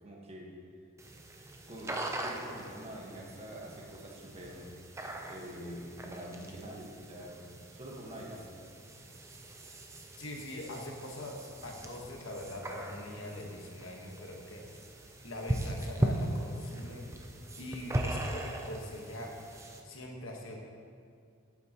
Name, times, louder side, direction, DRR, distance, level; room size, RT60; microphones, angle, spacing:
voice 1, 0.0-0.5 1.7-4.7 5.3-7.4 7.7-8.5, equal, 30° right, -2 dB, 1.4 m, -45 dB
sound 1, 1.0-19.8, right 1 dB, 15° right, 0.5 m, -39 dB
voice 2, 10.2-14.6 15.2-17.1 17.6-19.3 19.8-20.6, left 1 dB, 70° left, 0 dB, 1.4 m, -43 dB
11.5 x 8.4 x 3.0 m, 2.2 s
head